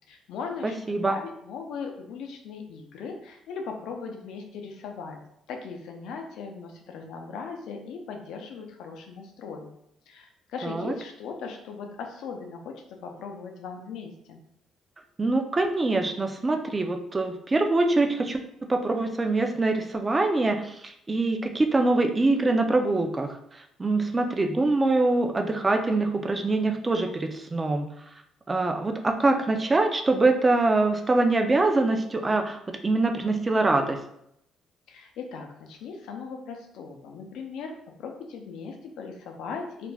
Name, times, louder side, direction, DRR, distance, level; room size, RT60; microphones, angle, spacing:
voice 1, 0.1-5.2 5.5-9.7 10.1-14.5 34.9-39.9, left 5 dB, 75° left, 3 dB, 0.5 m, -38 dB
voice 2, 0.6-1.2 10.6-10.9 15.2-28.1 28.5-34.0, right 2 dB, 25° right, 5 dB, 0.4 m, -24 dB
2.4 x 2.2 x 3.2 m, 0.76 s
supercardioid pair, 75°, 0 cm